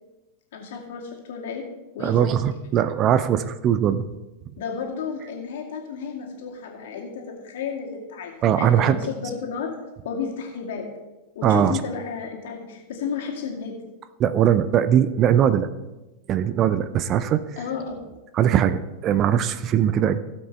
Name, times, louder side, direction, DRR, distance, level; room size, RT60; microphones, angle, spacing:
voice 1, 0.5-1.7 1.9-2.3 4.6-9.7 10.0-10.9 11.3-13.7 17.6-18.0, left 6 dB, 55° left, 0 dB, 2.4 m, -32 dB
voice 2, 2.0-4.0 8.4-9.0 11.4-11.8 14.2-15.7 16.3-17.4 18.4-20.2, right 9 dB, 35° right, 13 dB, 0.5 m, -20 dB
17.0 x 7.6 x 3.4 m, 1.1 s
figure-of-eight pair, 90°, 0 cm